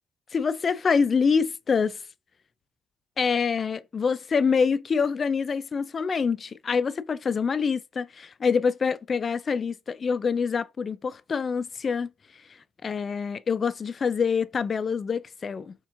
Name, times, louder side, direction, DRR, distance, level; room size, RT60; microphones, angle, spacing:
voice 1, 0.3-2.0 3.2-12.1 12.8-15.7, left 5 dB, 40° left, 0.3 m, -26 dB
4.5 x 3.5 x 2.4 m
cardioid pair, 105°, 0 cm